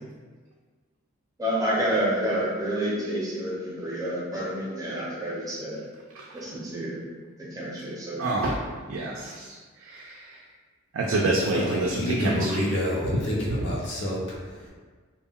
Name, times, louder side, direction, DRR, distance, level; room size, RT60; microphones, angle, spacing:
voice 1, 1.4-5.8 6.3-7.0 7.4-8.3, right 1 dB, 15° right, -6 dB, 0.6 m, -29 dB
voice 2, 8.2-8.6 8.9-9.6 9.8-10.4 10.9-12.6, right 2 dB, 75° right, -3 dB, 0.4 m, -27 dB
voice 3, 11.4-14.7, left 1 dB, 55° left, -5 dB, 0.7 m, -28 dB
2.2 x 2.2 x 3.6 m, 1.4 s
head